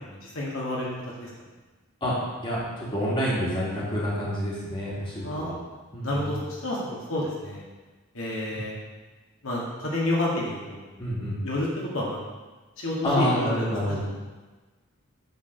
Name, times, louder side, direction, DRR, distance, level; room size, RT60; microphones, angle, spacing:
voice 1, 0.0-1.3 5.2-5.5 6.0-7.6 8.1-8.7 9.4-10.8 11.4-12.2 12.8-14.0, left 1 dB, 70° left, -4 dB, 2.1 m, -30 dB
voice 2, 2.4-5.5 5.9-6.3 8.5-8.6 11.0-11.4 13.0-14.0, equal, 25° left, -7 dB, 2.9 m, -28 dB
10.0 x 4.9 x 6.9 m, 1.3 s
head